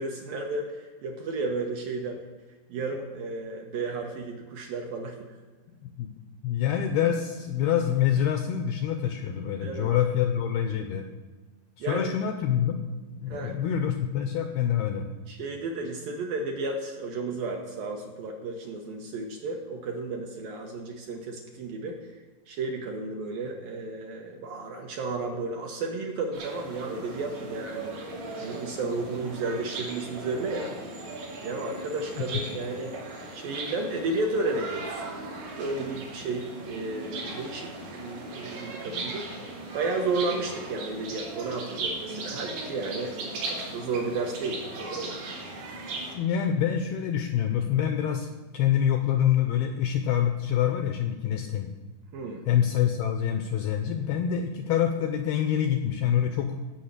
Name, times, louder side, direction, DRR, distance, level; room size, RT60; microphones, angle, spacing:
voice 1, 0.0-2.2 2.7-5.2 9.6-9.9 11.8-12.1 13.3-13.6 15.3-22.0 22.5-28.0 28.4-30.7 31.4-33.0 33.3-35.0 35.6-39.3 39.7-45.2 52.1-52.4, right 3 dB, 70° right, 1 dB, 2.3 m, -33 dB
voice 2, 6.4-11.1 11.8-12.9 13.1-15.1 32.2-32.4 46.2-51.7 52.5-56.6, left 9 dB, 80° left, 6 dB, 2.2 m, -26 dB
sound 1, 26.3-46.2, right 2 dB, 90° right, 5.3 m, -38 dB
15.0 x 5.7 x 8.2 m, 1.3 s
omnidirectional pair, 5.1 m